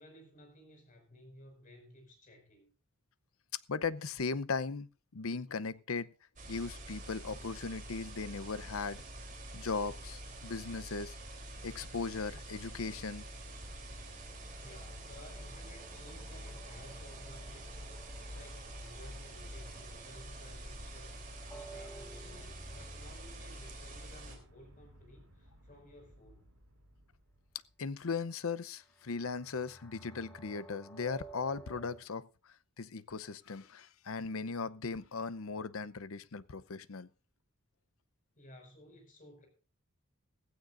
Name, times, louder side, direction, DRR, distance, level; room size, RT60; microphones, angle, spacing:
voice 1, 0.0-2.7 14.6-18.0 18.3-26.5 38.4-39.5, left 1 dB, 40° left, 5.6 m, -56 dB
voice 2, 3.7-6.1 6.5-9.0 9.5-11.2 11.6-13.3 27.8-37.1, left 4 dB, 80° left, 0.7 m, -38 dB
sound 1, 6.4-24.4, right 1 dB, 40° right, 3.4 m, -46 dB
sound 2, 13.8-23.6 28.8-32.0, right 3 dB, 10° left, 1.8 m, -55 dB
sound 3, 24.2-28.1, equal, 75° right, 5.2 m, -61 dB
16.0 x 15.5 x 2.6 m
head